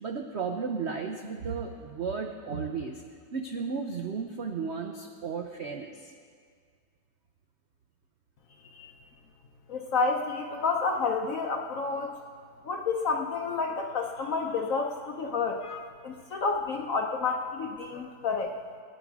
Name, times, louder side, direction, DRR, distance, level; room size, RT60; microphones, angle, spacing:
voice 1, 0.0-3.0 3.3-6.1, right 5 dB, 70° right, 3 dB, 0.6 m, -34 dB
voice 2, 9.7-12.1 12.6-18.5, left 4 dB, 60° left, 3 dB, 0.9 m, -30 dB
18.5 x 9.9 x 4.7 m, 2.1 s
omnidirectional pair, 2.1 m